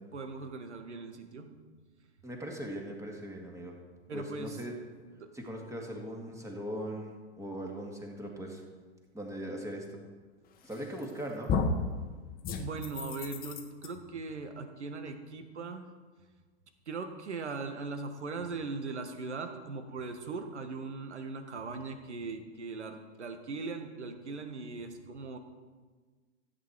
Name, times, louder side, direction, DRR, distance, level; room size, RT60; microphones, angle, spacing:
voice 1, 0.1-1.5 4.1-4.6 5.2-5.3 12.6-15.9 16.9-25.4, right 4 dB, 75° right, 7 dB, 1.7 m, -39 dB
voice 2, 2.2-3.8 4.1-4.7 5.3-8.6 9.1-10.0 10.6-11.5, equal, 10° right, 1 dB, 2.1 m, -40 dB
sound 1, 10.7-11.1 11.5-11.9 12.4-13.9, left 4 dB, 25° left, 1.2 m, -32 dB
14.5 x 8.6 x 4.8 m, 1.4 s
figure-of-eight pair, 105°, 34 cm